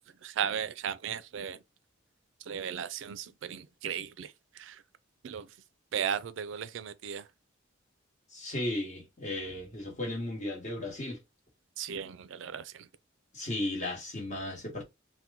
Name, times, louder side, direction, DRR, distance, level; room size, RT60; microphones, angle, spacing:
voice 1, 0.2-1.6 2.5-4.8 5.2-5.5 5.9-7.2 11.8-12.9, right 8 dB, 65° right, 0.4 m, -36 dB
voice 2, 8.3-11.2 13.3-14.8, left 1 dB, 35° left, 1.1 m, -35 dB
2.9 x 2.2 x 3.4 m
head